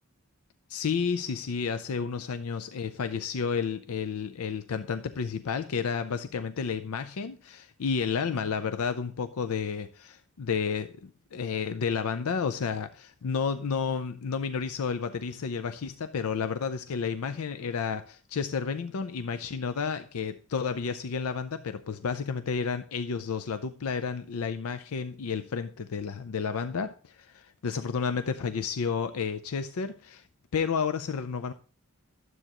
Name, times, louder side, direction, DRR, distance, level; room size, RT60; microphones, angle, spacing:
voice 1, 0.7-30.2 30.5-31.5, left 6 dB, 80° left, 0.5 m, -31 dB
12.0 x 7.8 x 3.0 m
head